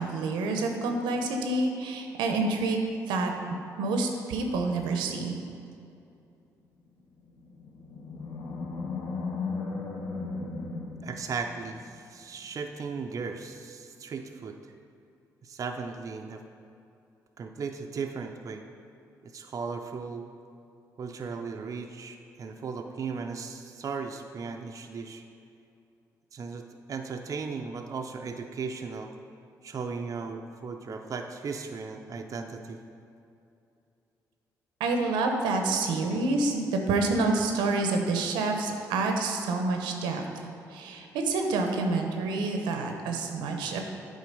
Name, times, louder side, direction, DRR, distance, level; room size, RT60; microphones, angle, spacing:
voice 1, 0.0-2.8 3.1-3.3 3.8-5.3 34.8-43.8, right 3 dB, 90° right, 4 dB, 0.7 m, -28 dB
Animal, 7.3-11.8, left 4 dB, 80° left, 1.1 m, -36 dB
voice 2, 11.0-14.6 15.4-16.4 17.4-18.6 19.2-20.3 21.0-25.2 26.3-29.1 29.6-32.8, right 5 dB, 45° right, 4 dB, 0.5 m, -36 dB
8.2 x 3.9 x 5.3 m, 2.7 s
supercardioid pair, 65°, 8 cm